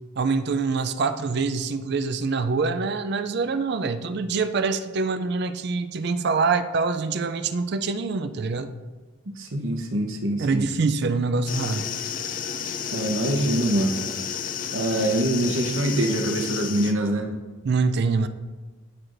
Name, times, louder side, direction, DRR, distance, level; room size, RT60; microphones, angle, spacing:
voice 1, 0.2-8.7 10.4-11.9 17.7-18.3, right 4 dB, 50° right, 11 dB, 0.4 m, -25 dB
voice 2, 9.3-10.6 12.9-14.0 14.7-17.3, right 1 dB, 75° right, 4 dB, 0.9 m, -24 dB
sound 1, 11.5-16.9, left 7 dB, 40° left, 0.4 m, -31 dB
12.5 x 4.8 x 2.6 m, 1.3 s
head